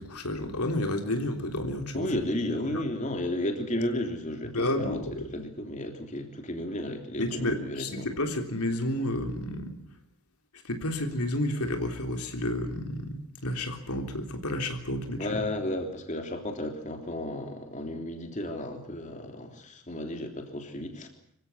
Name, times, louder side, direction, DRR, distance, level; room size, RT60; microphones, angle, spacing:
voice 1, 0.0-2.1 2.7-2.8 4.5-5.3 7.2-9.8 10.6-15.4, left 1 dB, 90° left, 4 dB, 3.5 m, -31 dB
voice 2, 1.9-5.0 5.3-8.1 15.2-21.1, left 1 dB, 35° left, 4 dB, 3.4 m, -33 dB
25.5 x 16.0 x 9.7 m, 0.69 s
head